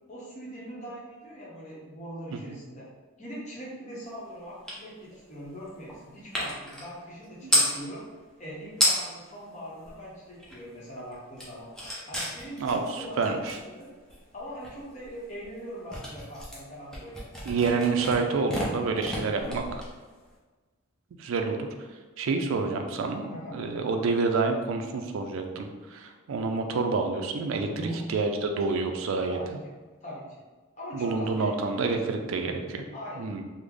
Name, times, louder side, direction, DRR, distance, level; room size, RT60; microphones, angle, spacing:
voice 1, 0.1-2.8 3.2-8.0 8.4-11.7 12.1-13.9 14.3-17.2 23.3-23.6 27.8-28.0 29.3-29.4 30.0-30.2 30.8-31.6 32.9-33.3, equal, 30° left, -6 dB, 0.8 m, -41 dB
sound 1, 4.7-4.8 5.1-7.8 8.4-8.5 8.7-9.3 9.6-10.8 11.1-20.3, left 1 dB, 5° left, 0.5 m, -32 dB
voice 2, 12.6-13.6 17.4-19.6 21.2-21.7 22.2-29.4 30.9-32.8 33.2-33.4, right 4 dB, 65° right, 4 dB, 0.3 m, -28 dB
3.2 x 2.1 x 3.6 m, 1.3 s
head